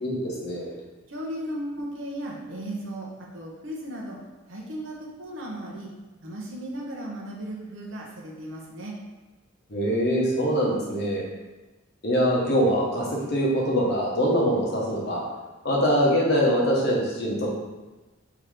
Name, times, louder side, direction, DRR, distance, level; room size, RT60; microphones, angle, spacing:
voice 1, 0.0-0.8 9.7-11.2 12.0-15.2 15.6-17.5, equal, 50° left, -3 dB, 1.1 m, -23 dB
voice 2, 1.1-3.1 3.3-4.2 4.5-5.9 6.2-8.9, right 1 dB, 65° right, -2 dB, 0.9 m, -35 dB
3.6 x 3.0 x 4.7 m, 1.2 s
head